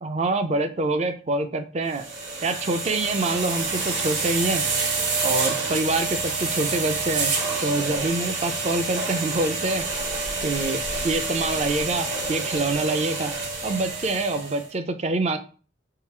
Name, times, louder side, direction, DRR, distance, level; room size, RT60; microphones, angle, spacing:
voice 1, 0.0-2.0 2.4-4.6 5.2-7.3 7.6-9.9 10.4-13.3 13.6-15.4, right 2 dB, 35° right, 8 dB, 0.4 m, -26 dB
sound 1, 1.9-14.6, right 3 dB, 80° right, 1.8 m, -28 dB
3.8 x 2.4 x 4.3 m, 0.37 s
head